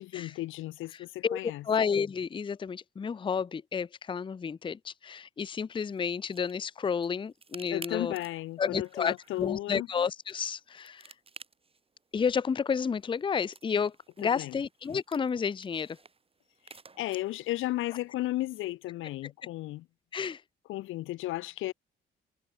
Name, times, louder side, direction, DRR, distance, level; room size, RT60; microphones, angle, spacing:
voice 1, 0.0-1.6 7.7-9.9 14.3-14.6 17.0-19.8 20.7-21.7, left 16 dB, 85° left, 0.9 m, -34 dB
voice 2, 1.6-8.1 8.6-11.1 12.1-16.0 20.1-20.4, left 6 dB, 25° left, 0.5 m, -31 dB
sound 1, 5.7-18.7, right 4 dB, 30° right, 4.9 m, -55 dB
cardioid pair, 90°, 20 cm